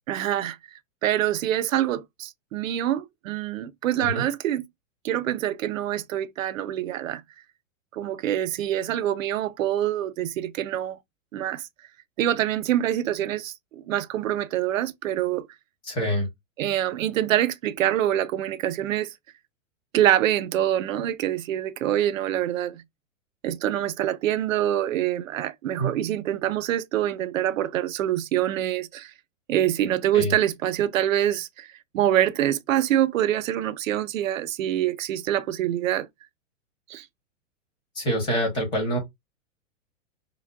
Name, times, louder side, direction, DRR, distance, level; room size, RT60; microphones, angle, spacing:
voice 1, 0.1-0.6 1.0-4.7 5.0-7.2 7.9-11.0 11.3-11.6 12.2-15.5 16.6-19.1 19.9-22.8 23.4-29.1 29.5-31.7 31.9-36.1 36.9-37.1, right 12 dB, 85° right, 0.6 m, -25 dB
voice 2, 15.8-16.3 25.8-25.9 30.1-30.3 37.9-39.0, equal, 10° left, 0.9 m, -26 dB
5.2 x 2.1 x 2.2 m
supercardioid pair, 170°, 39 cm